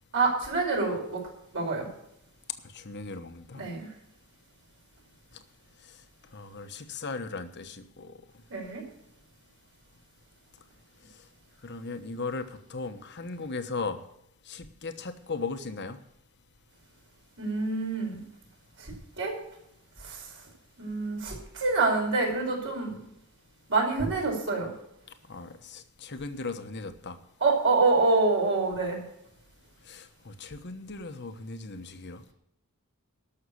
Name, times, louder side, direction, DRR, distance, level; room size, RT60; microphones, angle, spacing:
voice 1, 0.1-1.2 1.5-1.9 3.5-3.9 8.5-8.8 17.4-18.2 18.8-19.3 20.0-20.3 20.8-23.0 23.7-24.7 27.4-29.0, right 3 dB, 60° right, -1 dB, 5.2 m, -26 dB
voice 2, 2.7-3.7 5.9-6.0 6.3-8.1 11.6-14.0 14.5-16.0 25.3-27.2 29.9-32.2, left 3 dB, 55° left, 9 dB, 1.1 m, -37 dB
12.5 x 6.5 x 9.8 m, 0.77 s
head